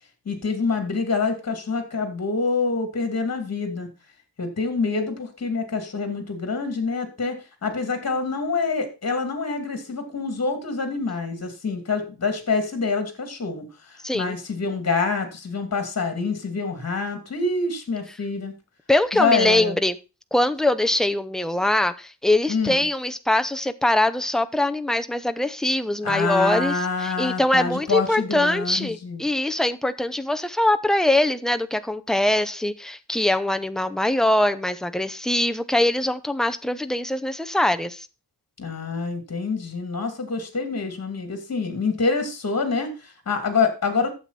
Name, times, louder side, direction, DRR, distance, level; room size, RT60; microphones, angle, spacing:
voice 1, 0.3-3.9 4.4-18.5 19.1-19.8 22.5-22.9 26.0-29.3 38.6-44.1, left 4 dB, 35° left, 2.6 m, -26 dB
voice 2, 14.0-14.3 18.9-20.0 20.3-38.1, left 1 dB, ahead, 0.6 m, -22 dB
11.5 x 7.8 x 4.2 m
wide cardioid pair, 145°, 43 cm